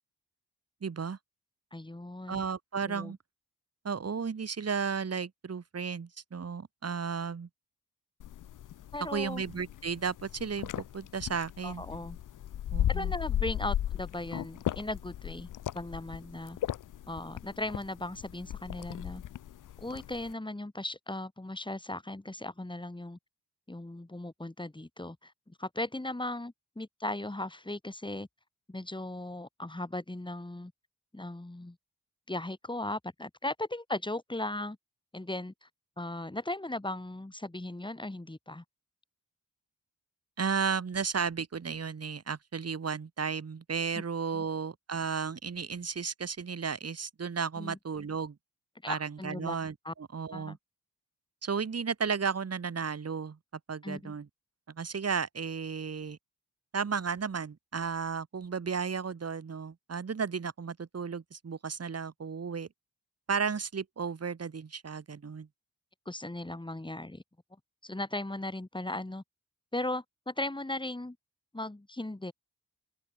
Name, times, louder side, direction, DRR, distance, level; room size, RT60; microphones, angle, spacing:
voice 1, 0.8-1.2 2.3-3.2 3.8-7.5 9.1-11.8 12.7-13.1 40.4-48.4 48.9-50.6 51.4-53.4 53.7-54.3 54.7-56.2 56.7-62.7 63.3-65.5, right 6 dB, 40° right, 1.0 m, -34 dB
voice 2, 1.7-2.4 2.9-3.1 8.9-9.4 11.6-12.2 12.9-15.5 15.7-16.6 17.1-19.2 19.8-23.2 23.7-28.3 28.7-30.7 31.1-31.8 32.3-34.8 35.1-35.7 36.0-38.6 43.9-44.0 44.3-44.4 47.6-47.8 48.8-49.5 49.8-49.9 50.3-50.6 53.8-54.1 66.0-67.2 67.8-69.2 69.7-71.2 71.5-72.3, left 1 dB, 10° left, 1.5 m, -37 dB
sound 1, 8.2-20.3, left 11 dB, 55° left, 0.4 m, -36 dB
open air
cardioid pair, 45°, 40 cm